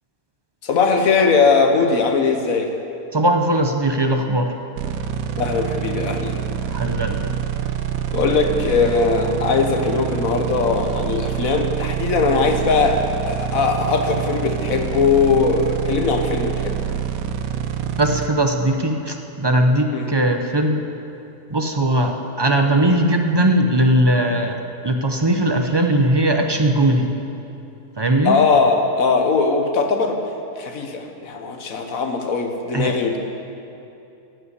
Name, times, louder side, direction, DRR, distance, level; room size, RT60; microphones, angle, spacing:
voice 1, 0.6-2.7 5.4-6.4 8.1-17.0 19.9-20.1 28.2-30.2 30.6-33.2, left 4 dB, 70° left, 4 dB, 1.5 m, -20 dB
voice 2, 3.1-4.5 6.7-7.3 18.0-20.8 21.5-24.6 24.8-27.1 28.0-28.4 32.7-33.0, right 1 dB, 35° right, 4 dB, 0.4 m, -19 dB
sound 1, 4.8-18.3, right 9 dB, 75° right, 1.0 m, -26 dB
14.5 x 5.5 x 9.6 m, 2.8 s
omnidirectional pair, 1.5 m